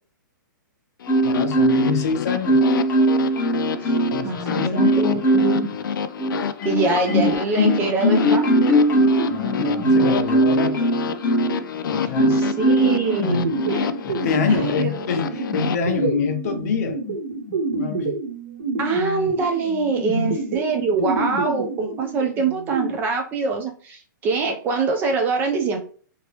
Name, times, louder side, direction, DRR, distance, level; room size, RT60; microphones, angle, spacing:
sound 1, 1.0-15.8, left 8 dB, 75° left, 0.4 m, -29 dB
Marimba xylophone, 1.1-2.0 2.4-4.3 4.7-5.6 6.2-11.6 12.1-13.0 13.6-13.8, right 1 dB, 15° left, 0.7 m, -19 dB
voice 1, 1.2-2.6 4.1-5.0 9.3-10.8 12.1-12.4 13.3-13.6 14.0-17.0 17.7-18.1 20.1-20.3, left 6 dB, 50° left, 0.7 m, -26 dB
voice 2, 4.2-5.7 6.6-8.5 12.3-13.9 14.5-15.1 15.4-15.5 18.8-25.8, right 4 dB, 20° right, 0.4 m, -24 dB
sound 2, 9.2-22.9, right 2 dB, 75° right, 1.6 m, -29 dB
2.9 x 2.8 x 3.1 m
hypercardioid pair, 155°, 11 cm